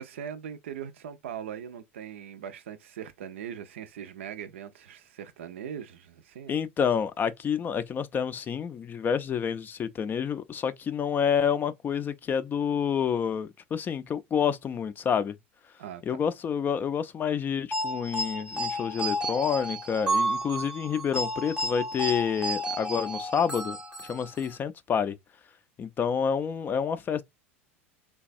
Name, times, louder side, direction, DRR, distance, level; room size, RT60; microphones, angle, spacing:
voice 1, 0.0-6.6 15.8-16.2, right 9 dB, 70° right, 0.4 m, -40 dB
voice 2, 6.5-15.4 16.1-23.8 24.0-25.2 25.8-27.2, left 7 dB, 30° left, 0.4 m, -28 dB
sound 1, 17.7-24.6, right 1 dB, 15° right, 0.7 m, -31 dB
3.2 x 2.3 x 2.5 m
figure-of-eight pair, 75°, 7 cm